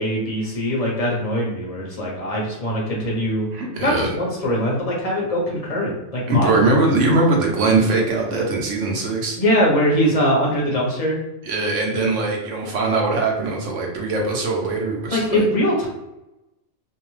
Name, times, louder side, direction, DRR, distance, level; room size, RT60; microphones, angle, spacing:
voice 1, 0.0-3.5 3.8-6.6 9.4-11.2 11.9-12.1 15.1-15.9, equal, 35° left, -3 dB, 0.7 m, -22 dB
voice 2, 3.5-4.2 6.3-9.4 11.4-15.4, right 3 dB, 70° right, 0 dB, 1.0 m, -21 dB
2.6 x 2.2 x 3.1 m, 0.96 s
omnidirectional pair, 1.4 m